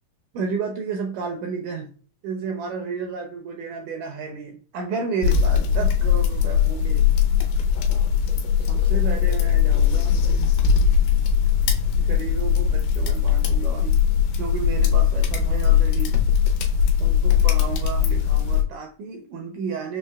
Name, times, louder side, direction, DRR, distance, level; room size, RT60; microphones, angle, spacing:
voice 1, 0.3-1.9 2.2-7.1 8.6-10.2 12.0-14.0 14.4-16.2 17.0-20.0, right 5 dB, 80° right, 3 dB, 1.9 m, -32 dB
sound 1, 5.2-18.6, left 8 dB, 80° left, 2.3 m, -20 dB
5.6 x 3.1 x 2.2 m, 0.42 s
omnidirectional pair, 4.0 m